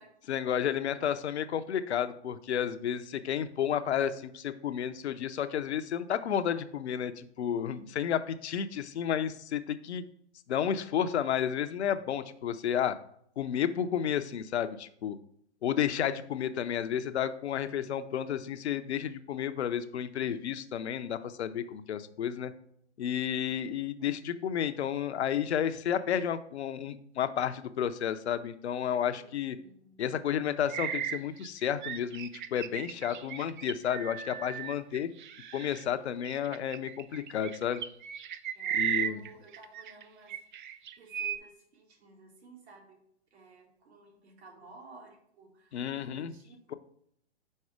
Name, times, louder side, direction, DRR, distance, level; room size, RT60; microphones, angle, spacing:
voice 1, 0.3-10.0 10.5-13.0 13.4-15.2 15.6-22.5 23.0-29.6 30.0-35.1 35.5-37.8 38.7-39.2 45.7-46.3, left 9 dB, 70° left, 11 dB, 0.6 m, -31 dB
voice 2, 29.1-30.0 38.6-40.4 40.7-43.0 43.3-46.8, right 3 dB, 65° right, -1 dB, 2.0 m, -55 dB
sound 1, 30.7-35.8 36.2-40.0 40.3-41.4, right 9 dB, 45° right, 0.4 m, -36 dB
5.4 x 4.2 x 4.8 m, 0.69 s
hypercardioid pair, 130°, 34 cm